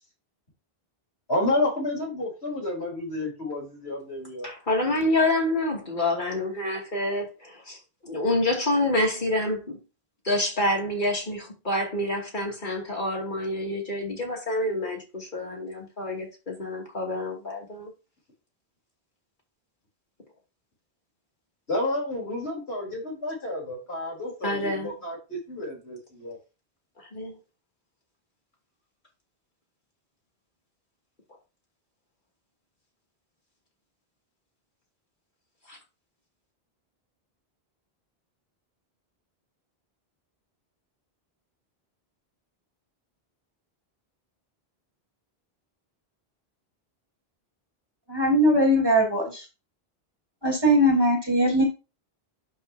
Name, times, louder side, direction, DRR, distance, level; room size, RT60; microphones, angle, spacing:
voice 1, 1.3-4.5 21.7-26.4, left 2 dB, 85° left, 4.4 m, -30 dB
voice 2, 4.4-9.8 10.2-17.9 24.4-24.9 27.0-27.4 35.7-35.8, left 1 dB, 50° left, 3.0 m, -27 dB
voice 3, 48.1-49.4 50.4-51.6, equal, 25° right, 2.8 m, -20 dB
11.5 x 5.6 x 2.9 m
omnidirectional pair, 1.0 m